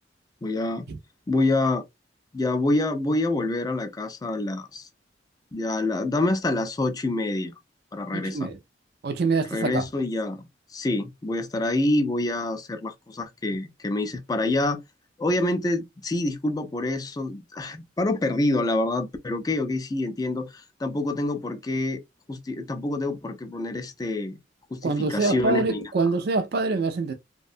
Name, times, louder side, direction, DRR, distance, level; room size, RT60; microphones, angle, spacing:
voice 1, 0.4-0.9 1.3-1.8 2.3-4.9 5.5-7.5 7.9-8.5 9.5-14.8 15.2-22.0 22.3-24.4 24.7-25.9, left 2 dB, 20° left, 0.3 m, -27 dB
voice 2, 8.1-8.6 9.0-9.8 24.8-27.1, right 3 dB, 55° right, 0.4 m, -25 dB
2.5 x 2.1 x 2.5 m
head